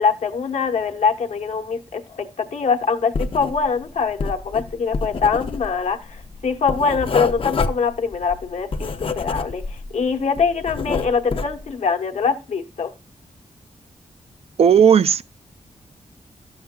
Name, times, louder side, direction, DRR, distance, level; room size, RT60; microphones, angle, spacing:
voice 1, 0.0-12.9, left 5 dB, 70° left, 1.1 m, -23 dB
Writing, 3.1-3.8 4.1-9.9 10.2-11.6, left 4 dB, 45° left, 0.6 m, -27 dB
voice 2, 14.6-15.2, right 7 dB, 55° right, 0.4 m, -14 dB
12.0 x 7.1 x 2.3 m
wide cardioid pair, 130°, 12 cm